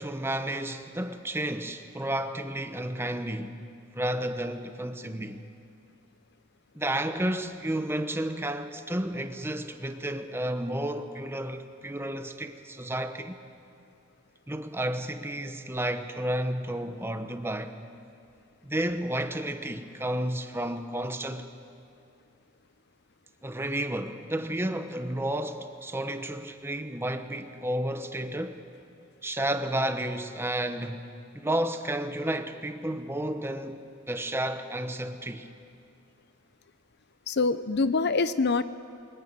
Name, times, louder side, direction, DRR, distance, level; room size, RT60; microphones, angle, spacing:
voice 1, 0.0-3.6 3.9-5.4 6.7-13.3 14.5-17.7 18.6-21.5 23.4-28.6 29.2-31.1 31.3-35.5, right 1 dB, 10° right, 1.0 m, -31 dB
voice 2, 37.3-38.6, left 3 dB, 55° left, 0.7 m, -25 dB
23.5 x 21.0 x 9.0 m
head